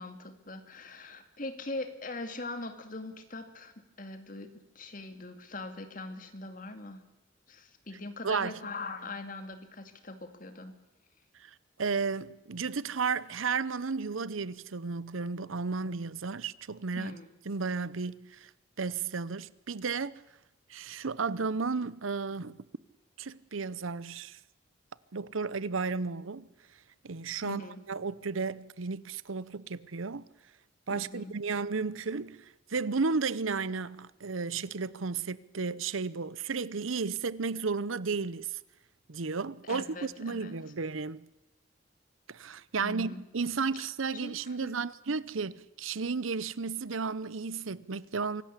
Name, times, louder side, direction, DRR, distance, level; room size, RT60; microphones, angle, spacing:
voice 1, 0.0-7.0 7.5-10.8 17.0-17.3 27.4-27.8 30.9-31.3 39.6-40.6 42.8-43.2 44.1-44.7, left 2 dB, 40° left, 2.4 m, -41 dB
voice 2, 8.2-8.6 11.4-11.5 11.8-17.1 17.5-18.5 18.8-20.1 20.7-22.6 23.2-24.4 25.1-26.5 27.0-30.3 30.9-38.6 39.1-41.3 42.3-48.4, right 4 dB, 85° right, 0.8 m, -33 dB
25.5 x 17.5 x 8.3 m
head